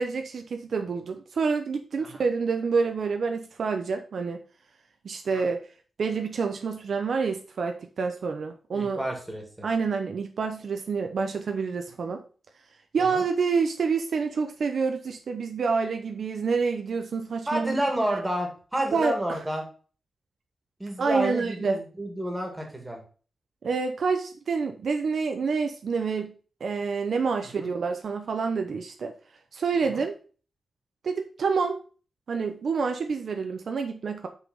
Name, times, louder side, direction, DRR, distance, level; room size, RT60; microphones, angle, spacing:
voice 1, 0.0-4.4 5.0-5.6 6.0-9.0 9.6-12.2 12.9-17.8 18.9-19.1 21.0-21.8 23.6-26.3 26.6-29.1 29.5-30.1 31.0-31.8 32.3-34.3, right 5 dB, 60° right, 5 dB, 0.9 m, -27 dB
voice 2, 8.7-9.7 13.0-13.2 17.5-19.7 20.8-23.0 27.6-27.7 29.8-30.0, right 1 dB, 10° right, 2 dB, 2.3 m, -30 dB
6.3 x 5.9 x 5.5 m, 0.38 s
wide cardioid pair, 150°, 0 cm